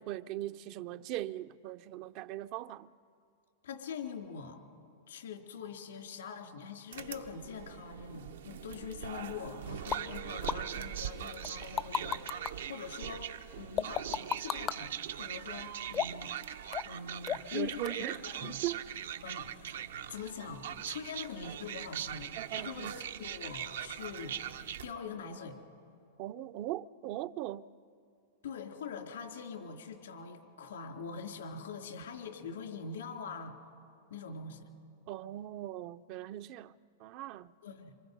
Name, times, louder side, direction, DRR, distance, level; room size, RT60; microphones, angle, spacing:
voice 1, 0.0-2.9 17.5-18.8 22.4-23.0 26.2-27.7 35.1-36.7 37.0-37.5, right 14 dB, 50° right, 0.6 m, -39 dB
voice 2, 3.6-4.6 5.1-16.5 16.9-18.5 19.2-19.5 20.1-24.4 24.8-25.6 28.4-33.6 34.1-34.6 37.6-37.9, left 6 dB, 80° left, 3.6 m, -43 dB
sound 1, 6.9-24.9, right 9 dB, 80° right, 0.9 m, -41 dB
sound 2, 9.9-10.0 10.5-10.6 11.4-12.5 13.8-14.8 15.9-16.3 16.7-17.0 17.3-17.6 17.9-18.0, left 8 dB, 30° left, 0.6 m, -33 dB
28.0 x 26.0 x 5.4 m
hypercardioid pair, 110°, 0 cm